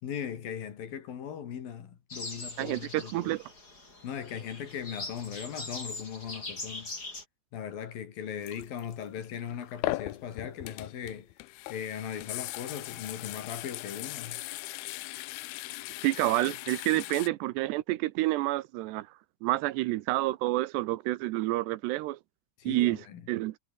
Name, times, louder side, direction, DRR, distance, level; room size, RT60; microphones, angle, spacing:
voice 1, 0.0-3.3 4.0-6.9 7.5-11.3 11.7-14.4 22.6-23.2, left 8 dB, 60° left, 3.9 m, -39 dB
sound 1, 2.1-7.2, left 2 dB, 20° left, 6.3 m, -42 dB
voice 2, 2.6-3.5 16.0-19.1 19.4-22.2 22.7-23.6, right 18 dB, 80° right, 2.8 m, -29 dB
sound 2, 8.4-17.3, left 20 dB, 80° left, 2.4 m, -39 dB
omnidirectional pair, 5.0 m